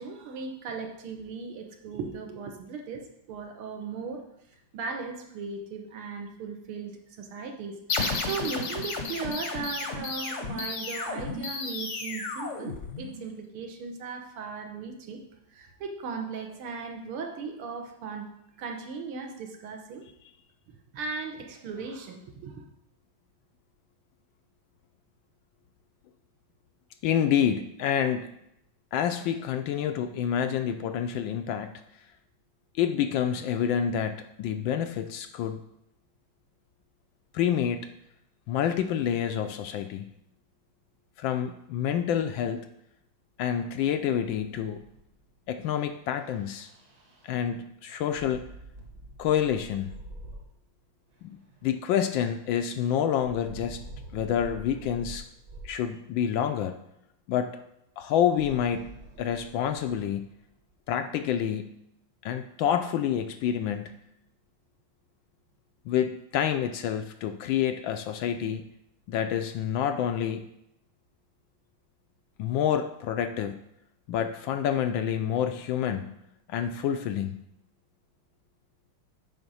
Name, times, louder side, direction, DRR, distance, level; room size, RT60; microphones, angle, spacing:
voice 1, 0.0-4.2 4.7-15.2 15.5-18.3 18.6-20.0 20.7-22.7, right 5 dB, 80° right, 3 dB, 1.9 m, -37 dB
sound 1, 7.9-13.3, left 3 dB, 50° left, 0.9 m, -33 dB
voice 2, 27.0-28.3 28.9-31.8 32.7-35.6 37.3-37.9 38.5-40.1 41.2-42.7 43.4-44.8 45.5-46.7 47.2-48.5 49.2-50.0 51.2-53.8 54.1-55.2 55.6-56.8 57.3-57.6 58.0-58.9 59.2-60.2 60.9-61.8 62.2-64.0 65.9-68.6 69.1-70.5 72.4-73.6 74.1-76.1 76.5-77.4, left 9 dB, 75° left, 7 dB, 1.2 m, -28 dB
sound 2, 44.2-45.3 46.1-47.3 48.1-50.7 51.1-52.4 53.2-55.8 58.3-60.7, right 1 dB, 50° right, 1.7 m, -46 dB
7.9 x 4.9 x 5.5 m, 0.80 s
omnidirectional pair, 2.4 m